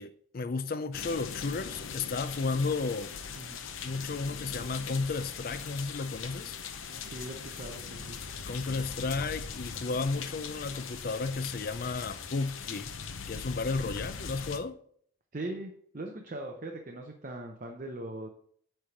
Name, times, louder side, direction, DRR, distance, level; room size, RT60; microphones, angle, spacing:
voice 1, 0.0-3.1 3.8-6.6 8.5-12.9 13.3-14.8, left 4 dB, 45° left, 0.4 m, -33 dB
sound 1, 0.9-14.6, left 6 dB, 75° left, 0.7 m, -40 dB
voice 2, 7.1-8.2 15.3-18.3, right 1 dB, 40° right, 0.7 m, -40 dB
8.8 x 3.4 x 5.7 m
head